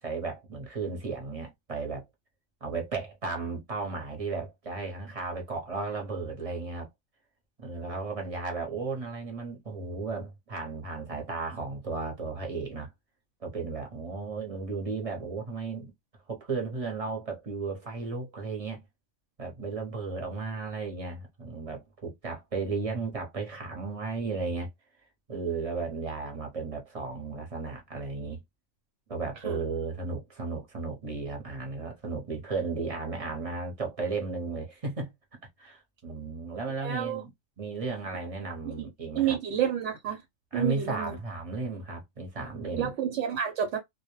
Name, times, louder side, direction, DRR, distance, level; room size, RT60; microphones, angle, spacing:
voice 1, 0.0-2.0 2.6-6.9 7.6-12.9 13.4-15.9 16.3-18.8 19.4-24.7 25.3-28.4 29.1-35.1 35.6-37.3 37.6-39.4 40.5-42.9, right 4 dB, 35° right, 0.7 m, -34 dB
voice 2, 36.8-37.2 38.7-38.9 39.1-40.2 40.5-41.1 42.8-43.8, right 9 dB, 80° right, 0.9 m, -29 dB
2.1 x 2.1 x 2.9 m
omnidirectional pair, 1.3 m